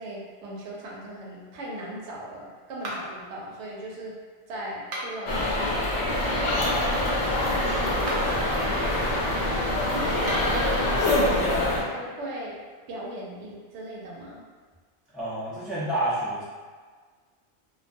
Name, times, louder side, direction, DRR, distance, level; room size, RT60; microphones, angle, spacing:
voice 1, 0.0-4.1 4.5-5.8 8.8-9.2 9.9-10.4 10.7-12.6 12.9-14.4, right 1 dB, 90° right, -3 dB, 0.9 m, -39 dB
sound 1, 2.8-3.3 4.8-5.4 7.9-8.4 10.1-10.6, right 1 dB, 60° right, 0.7 m, -36 dB
sound 2, 5.3-11.8, left 1 dB, 80° left, 0.9 m, -25 dB
Water, 6.1-11.1, equal, 20° right, 0.8 m, -35 dB
voice 2, 15.1-16.4, right 1 dB, ahead, -10 dB, 0.4 m, -29 dB
2.3 x 2.2 x 2.5 m, 1.5 s
omnidirectional pair, 1.1 m